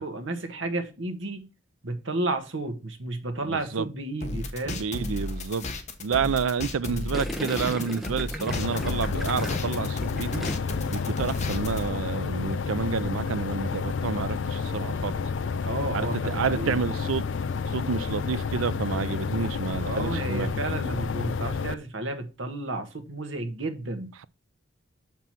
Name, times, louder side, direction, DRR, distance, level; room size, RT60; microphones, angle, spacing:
voice 1, 0.0-1.5 1.8-4.8 15.6-16.8 19.8-24.1, right 2 dB, 65° right, 1.5 m, -32 dB
voice 2, 3.5-3.9 4.6-5.7 6.0-10.5 10.9-15.2 15.9-17.3 17.7-20.5, right 5 dB, 85° right, 0.5 m, -29 dB
sound 1, 4.2-11.9, left 2 dB, 35° left, 1.2 m, -34 dB
Gurgling, 7.1-10.9 11.2-11.6, equal, ahead, 1.2 m, -36 dB
sound 2, 8.5-21.7, left 5 dB, 65° left, 0.5 m, -30 dB
6.8 x 6.0 x 4.5 m
head